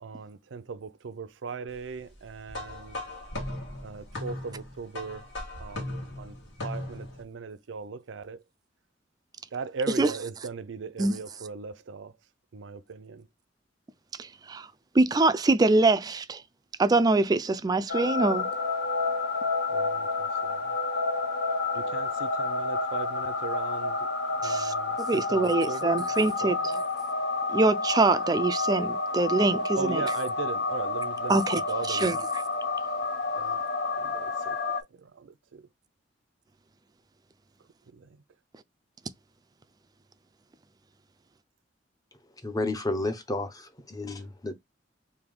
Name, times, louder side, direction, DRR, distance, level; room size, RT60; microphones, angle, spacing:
voice 1, 0.0-3.0 3.8-5.3 5.6-5.9 6.2-6.4 6.6-8.4 9.5-12.1 12.5-13.3 19.7-20.7 21.7-26.1 26.4-26.8 29.8-32.2 33.3-33.6 34.0-34.6 34.9-35.7 37.9-38.2, right 5 dB, 85° right, 0.5 m, -39 dB
sound 1, 2.5-7.2, left 1 dB, 80° left, 1.6 m, -38 dB
voice 2, 14.2-14.7 14.9-16.4 16.8-18.5 24.4-26.6 27.5-30.0 31.3-31.6 31.9-32.2, right 3 dB, 20° right, 0.3 m, -24 dB
sound 2, 17.9-34.8, left 3 dB, 65° left, 0.6 m, -29 dB
voice 3, 42.4-44.5, left 2 dB, 20° left, 0.6 m, -31 dB
3.4 x 2.6 x 3.7 m
head